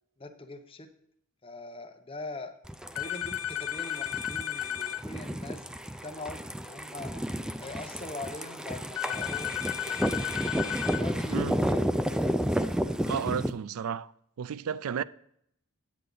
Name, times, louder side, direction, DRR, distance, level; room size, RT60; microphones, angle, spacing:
voice 1, 0.2-0.9 1.4-2.5 3.0-5.6 6.0-7.1 7.6-10.0 10.4-11.9, left 2 dB, 25° left, 0.8 m, -42 dB
sound 1, 2.7-13.5, equal, 5° right, 0.3 m, -31 dB
sound 2, 2.9-5.0 9.0-11.0, left 11 dB, 65° left, 0.4 m, -33 dB
voice 2, 13.1-14.1 14.4-15.0, right 7 dB, 85° right, 0.4 m, -32 dB
9.2 x 8.4 x 3.9 m
head